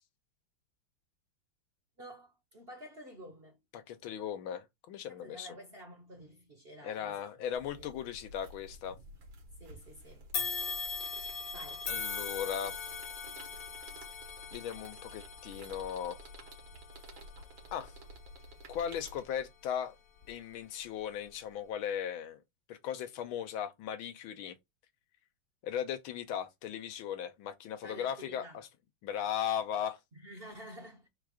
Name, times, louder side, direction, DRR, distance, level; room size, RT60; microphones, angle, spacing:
voice 1, 2.0-3.6 5.1-7.3 7.7-7.9 8.9-9.0 9.6-10.6 11.2-11.9 13.3-13.5 13.8-14.0 27.8-28.6 30.1-31.1, right 1 dB, 40° right, 0.9 m, -51 dB
voice 2, 3.7-5.6 6.8-9.0 11.9-12.8 14.5-16.2 17.7-17.9 18.7-20.0 20.3-22.4 22.7-24.6 25.6-28.7 29.0-30.0, left 9 dB, 80° left, 1.6 m, -37 dB
sound 1, 7.5-19.2, right 1 dB, 75° right, 2.1 m, -52 dB
sound 2, 10.3-19.6 20.2-20.3 21.3-21.4, left 5 dB, 55° left, 1.0 m, -41 dB
4.4 x 2.5 x 4.8 m
omnidirectional pair, 2.2 m